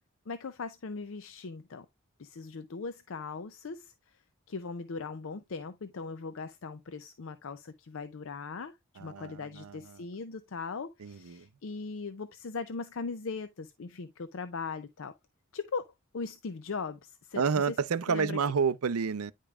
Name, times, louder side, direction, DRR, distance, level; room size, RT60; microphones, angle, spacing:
voice 1, 0.3-1.9 2.2-4.2 4.5-15.1 15.5-15.8 16.1-17.8 18.1-18.4, left 4 dB, 65° left, 0.5 m, -39 dB
voice 2, 9.0-10.0 11.0-11.5 17.3-19.3, right 6 dB, 85° right, 0.5 m, -30 dB
9.9 x 5.1 x 2.3 m
head